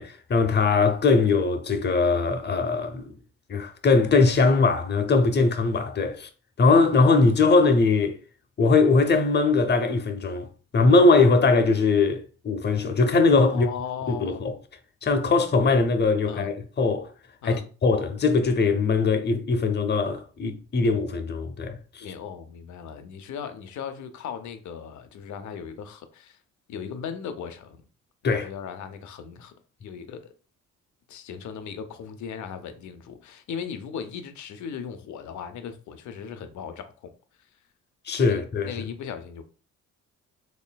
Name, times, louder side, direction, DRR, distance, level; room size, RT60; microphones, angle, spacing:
voice 1, 0.0-3.2 3.5-6.3 6.6-8.2 8.6-10.5 10.7-13.7 14.1-14.5 15.0-17.1 17.4-22.1 28.2-28.5 38.1-38.7, left 3 dB, 35° left, 0.7 m, -21 dB
voice 2, 13.5-14.5 16.3-16.5 17.4-17.7 22.0-26.4 26.7-27.8 28.3-29.5 29.8-30.3 31.1-37.1 38.3-39.4, left 7 dB, 70° left, 0.7 m, -37 dB
4.2 x 3.1 x 2.3 m
cardioid pair, 90°, 30 cm